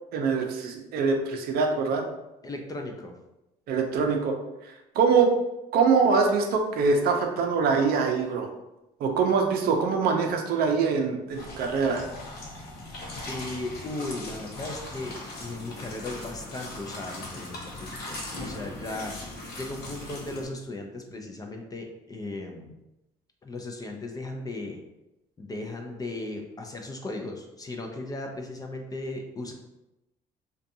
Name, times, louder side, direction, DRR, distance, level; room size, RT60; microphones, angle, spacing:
voice 1, 0.1-2.0 3.7-4.4 4.6-5.3 5.7-8.5 9.0-12.1, right 5 dB, 65° right, 3 dB, 0.5 m, -24 dB
voice 2, 2.4-3.2 13.3-19.3 19.6-22.7 23.4-24.8 25.4-29.5, left 2 dB, 20° left, 2 dB, 0.3 m, -36 dB
sound 1, 11.3-20.5, left 2 dB, 70° left, 0.7 m, -39 dB
2.5 x 2.3 x 2.6 m, 0.94 s
cardioid pair, 110°, 17 cm